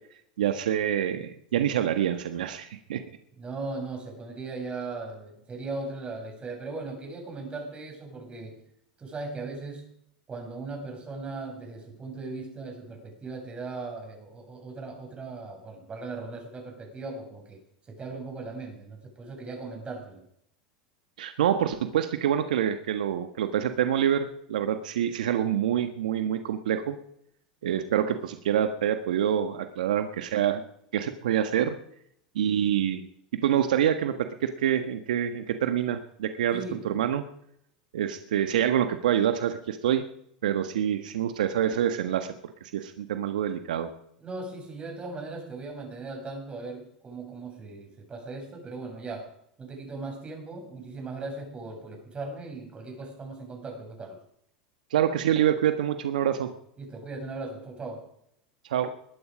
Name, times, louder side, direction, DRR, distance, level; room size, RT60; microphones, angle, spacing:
voice 1, 0.4-3.0 21.2-27.0 27.6-30.6 30.9-31.8 32.3-33.0 33.4-37.2 37.9-40.0 40.4-42.3 42.6-43.9 54.9-56.5 58.6-58.9, right 10 dB, 80° right, 8 dB, 1.5 m, -26 dB
voice 2, 3.4-8.7 9.0-9.9 10.3-20.2 36.5-37.0 44.2-54.2 56.8-58.1, right 3 dB, 25° right, 2 dB, 6.9 m, -38 dB
21.0 x 11.5 x 5.1 m, 0.71 s
hypercardioid pair, 100°, 4 cm